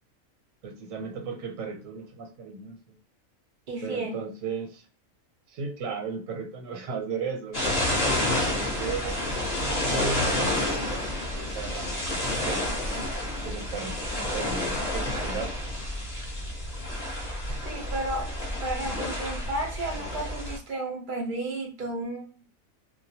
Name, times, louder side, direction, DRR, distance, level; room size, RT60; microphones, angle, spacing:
voice 1, 0.6-3.0 3.8-4.8 5.5-7.6 8.1-9.2 9.8-11.1 11.3-12.8 13.4-15.5, right 5 dB, 85° right, 3 dB, 1.0 m, -35 dB
voice 2, 3.7-4.2 8.0-8.1 8.7-8.8 17.7-18.3 18.6-22.3, right 2 dB, 50° right, 2 dB, 0.6 m, -33 dB
sound 1, 7.5-20.6, left 1 dB, 40° left, 0.6 m, -29 dB
2.2 x 2.2 x 2.7 m, 0.36 s
omnidirectional pair, 1.4 m